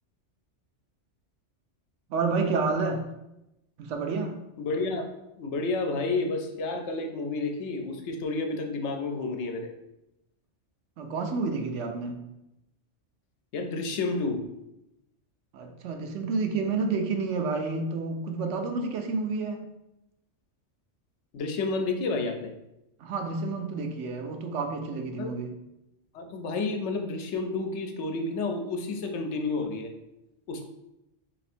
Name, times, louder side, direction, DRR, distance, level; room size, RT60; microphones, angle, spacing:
voice 1, 2.1-3.0 3.8-4.4 11.0-12.2 15.5-19.6 23.0-25.6, right 4 dB, 80° right, 5 dB, 0.9 m, -29 dB
voice 2, 4.6-5.0 5.4-9.7 13.5-14.4 21.3-22.5 25.2-25.3 26.1-29.9 30.5-30.6, left 3 dB, 75° left, 4 dB, 0.9 m, -30 dB
3.4 x 2.9 x 4.2 m, 0.90 s
omnidirectional pair, 1.2 m